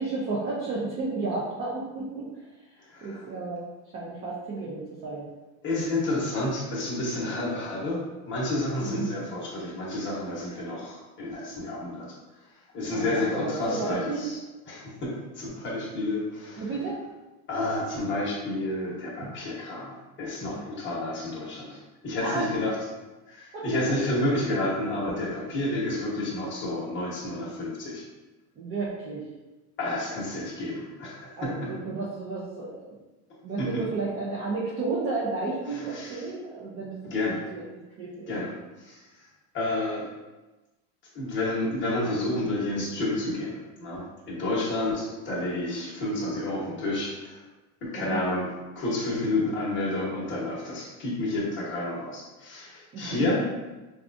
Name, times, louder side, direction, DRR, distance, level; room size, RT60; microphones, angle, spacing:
voice 1, 0.0-2.4 2.7-3.7 3.9-5.3 8.8-9.1 12.9-14.3 16.6-17.0 22.2-22.5 23.5-24.0 25.7-25.8 28.6-29.3 31.4-33.0 33.4-37.6 38.0-38.3 47.9-48.2 52.9-53.2, right 3 dB, 30° right, -6 dB, 0.5 m, -32 dB
voice 2, 2.9-3.3 5.6-12.2 12.7-14.4 14.7-16.6 17.5-22.7 23.3-28.0 29.8-31.7 33.6-33.8 35.7-36.2 37.1-37.4 38.3-38.5 38.8-39.0 39.5-40.1 41.1-47.4 47.8-53.5, left 2 dB, 25° left, -6 dB, 1.0 m, -30 dB
4.7 x 2.4 x 2.5 m, 1.1 s
cardioid pair, 155°, 45 cm